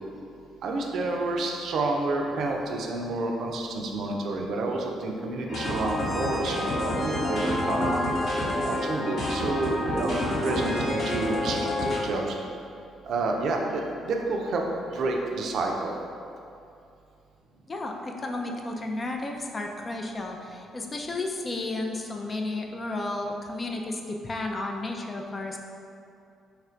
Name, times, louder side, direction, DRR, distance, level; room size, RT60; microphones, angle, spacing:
voice 1, 0.6-8.1 8.4-12.3 13.1-15.9, right 2 dB, 65° right, 1 dB, 0.4 m, -29 dB
sound 1, 5.5-12.0, left 1 dB, 60° left, 1.1 m, -28 dB
voice 2, 17.7-25.6, left 2 dB, 30° left, 2 dB, 0.4 m, -33 dB
3.2 x 2.4 x 4.3 m, 2.6 s
supercardioid pair, 75°, 0 cm